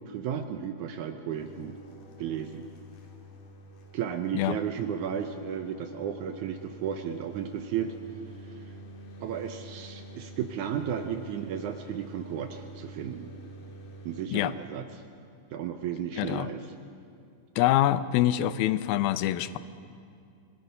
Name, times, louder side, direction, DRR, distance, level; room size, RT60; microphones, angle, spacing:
voice 1, 0.1-1.8 2.2-2.6 3.9-7.9 9.2-13.3 14.1-15.0 15.5-16.7, right 8 dB, 75° right, 7 dB, 1.9 m, -34 dB
sound 1, 1.4-14.3, right 1 dB, 65° left, 3.4 m, -47 dB
voice 2, 16.2-16.5 17.6-19.6, left 13 dB, 90° left, 14 dB, 2.5 m, -25 dB
25.0 x 18.5 x 5.5 m, 2.5 s
omnidirectional pair, 4.1 m